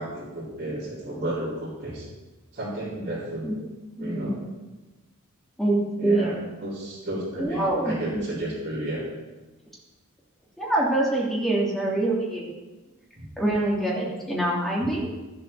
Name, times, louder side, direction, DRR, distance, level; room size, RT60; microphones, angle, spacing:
voice 1, 0.0-2.1 2.5-3.5 4.0-4.3 6.0-9.0 13.2-13.3, right 1 dB, 40° right, -12 dB, 4.6 m, -32 dB
voice 2, 4.0-4.3 5.6-6.4 7.4-8.2 10.6-12.4 13.4-15.1, right 1 dB, ahead, -4 dB, 3.1 m, -25 dB
13.5 x 7.7 x 7.0 m, 1.2 s
head